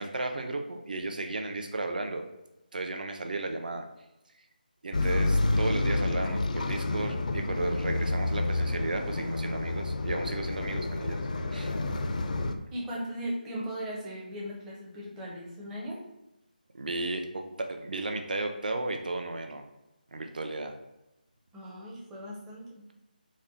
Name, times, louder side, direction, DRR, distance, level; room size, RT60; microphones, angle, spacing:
voice 1, 0.0-2.2 2.7-3.9 4.8-11.2 11.5-11.7 16.8-19.6 20.1-20.7, right 2 dB, 60° right, 5 dB, 0.6 m, -34 dB
sound 1, 4.9-12.5, left 2 dB, 55° left, 0.4 m, -29 dB
voice 2, 12.7-16.0 21.5-22.8, equal, 5° right, -5 dB, 0.5 m, -38 dB
4.1 x 2.1 x 3.9 m, 0.94 s
figure-of-eight pair, 165°, 5 cm